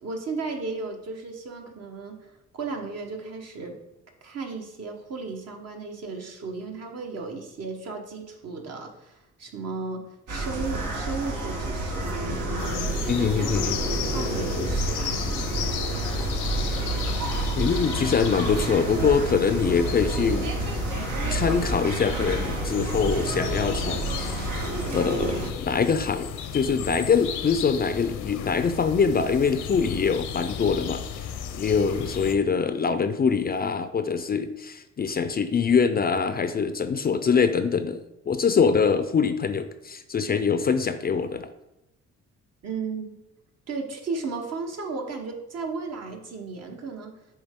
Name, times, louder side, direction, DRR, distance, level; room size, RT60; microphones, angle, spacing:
voice 1, 0.0-2.2 2.5-3.8 4.2-13.3 14.1-15.7 42.6-43.2 43.7-47.1, right 4 dB, 55° right, 2 dB, 1.2 m, -35 dB
sound 1, 10.3-25.5, right 2 dB, 80° right, 1.3 m, -29 dB
sound 2, 12.6-32.4, left 8 dB, 80° left, 0.7 m, -34 dB
voice 2, 13.1-13.8 17.6-20.5 21.3-24.5 24.9-31.3 31.5-38.0 38.3-41.5, left 6 dB, 30° left, 10 dB, 0.4 m, -24 dB
7.9 x 3.3 x 3.6 m, 0.89 s
cardioid pair, 90°, 30 cm